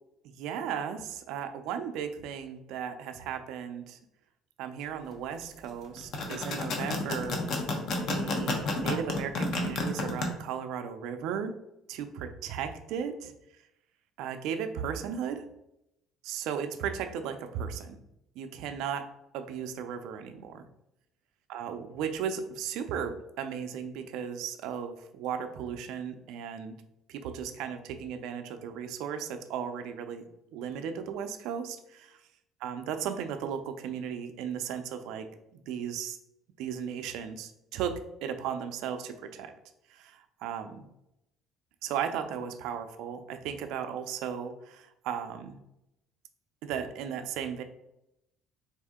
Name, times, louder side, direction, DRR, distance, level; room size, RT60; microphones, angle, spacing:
voice 1, 0.2-4.0 4.6-7.4 8.1-11.5 11.9-13.3 14.2-15.4 16.2-18.0 18.4-19.0 19.3-20.7 21.5-26.7 27.1-32.1 32.6-35.3 35.5-36.2 36.6-39.5 39.9-40.9 41.8-45.6 46.6-47.6, right 8 dB, 75° right, 8 dB, 0.4 m, -36 dB
sound 1, 6.0-10.2, left 3 dB, 50° left, 0.8 m, -30 dB
4.2 x 2.7 x 3.5 m, 0.85 s
cardioid pair, 150°, 0 cm